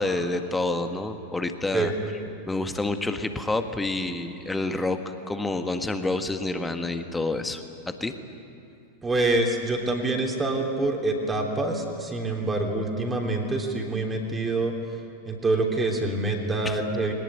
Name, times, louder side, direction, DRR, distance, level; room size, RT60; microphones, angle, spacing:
voice 1, 0.0-1.9 2.5-8.1 16.6-16.8, left 2 dB, 10° left, 8 dB, 1.6 m, -28 dB
voice 2, 9.0-14.7 15.3-17.1, right 2 dB, 15° right, 1 dB, 3.4 m, -26 dB
22.0 x 19.5 x 9.2 m, 2.7 s
figure-of-eight pair, 90°, 0 cm